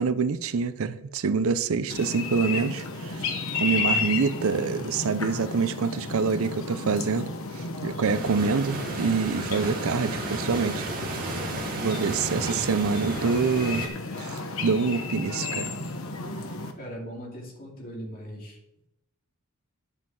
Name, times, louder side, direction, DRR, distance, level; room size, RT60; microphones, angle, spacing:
voice 1, 0.0-3.3 3.6-7.3 7.5-10.9 11.2-11.3 11.8-13.9 14.2-15.7, right 5 dB, 65° right, 0.5 m, -26 dB
sound 1, 1.9-16.7, left 3 dB, 65° left, 1.2 m, -33 dB
sound 2, 8.0-13.9, right 2 dB, 40° right, 1.9 m, -34 dB
voice 2, 16.8-18.6, equal, 40° left, 2.6 m, -39 dB
9.9 x 5.6 x 6.1 m
head